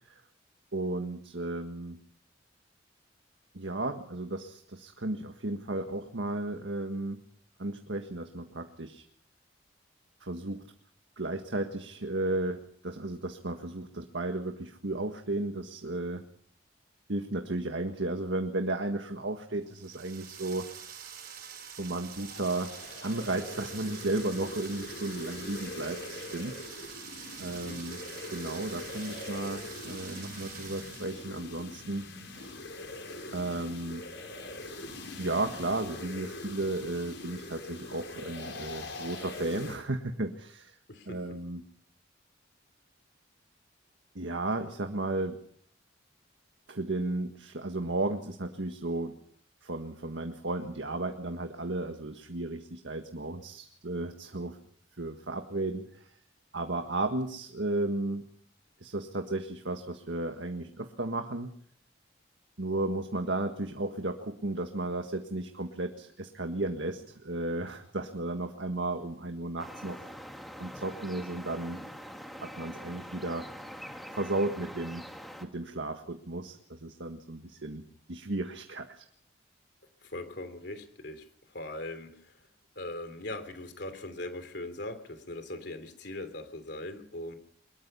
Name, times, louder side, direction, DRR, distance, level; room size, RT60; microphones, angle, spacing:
voice 1, 0.7-2.0 3.5-7.2 7.6-9.0 10.2-10.6 11.2-16.2 17.1-20.7 21.8-22.7 23.0-26.6 27.4-28.0 28.3-32.6 33.3-34.0 35.2-40.7 41.1-41.6 44.1-45.4 46.7-49.2 49.6-54.6 55.0-56.1 56.5-58.3 58.8-61.5 62.6-70.0 70.6-71.8 72.4-73.5 74.1-75.0 75.4-79.0, right 2 dB, 75° right, 5 dB, 1.7 m, -34 dB
sound 1, 19.7-31.4, right 8 dB, 55° right, 6.2 m, -46 dB
sound 2, 22.1-39.8, left 2 dB, 80° left, 6.1 m, -43 dB
voice 2, 27.5-27.8 40.9-41.4 80.0-81.2 81.5-82.3 82.7-87.3, left 1 dB, 60° left, 9 dB, 3.2 m, -40 dB
sound 3, 69.6-75.5, equal, ahead, 2.2 m, -44 dB
23.5 x 21.5 x 5.6 m, 0.62 s
head